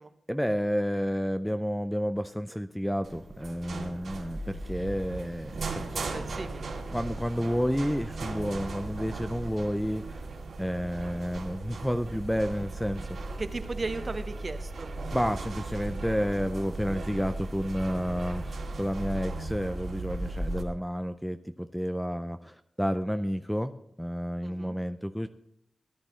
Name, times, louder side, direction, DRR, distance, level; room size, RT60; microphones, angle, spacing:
voice 1, 0.3-6.2 6.9-10.3 10.6-13.2 15.1-23.7 24.0-25.3, equal, ahead, 9 dB, 0.4 m, -30 dB
sound 1, 3.0-20.6, right 3 dB, 75° right, 2.3 m, -37 dB
voice 2, 5.9-6.7 13.4-14.9 24.4-24.7, right 3 dB, 35° right, 10 dB, 0.8 m, -36 dB
17.5 x 11.0 x 3.1 m, 0.75 s
wide cardioid pair, 165°, 0 cm